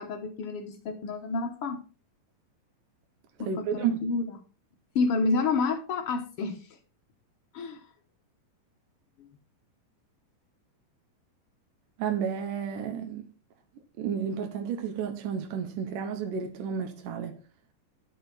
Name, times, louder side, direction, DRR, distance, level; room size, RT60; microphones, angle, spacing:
voice 1, 0.0-1.8 3.4-4.2 4.9-6.6 7.5-7.8, left 4 dB, 85° left, 1.2 m, -29 dB
voice 2, 3.4-4.0 12.0-13.2 14.0-17.4, right 7 dB, 70° right, 2.5 m, -31 dB
12.0 x 6.8 x 4.1 m
omnidirectional pair, 4.3 m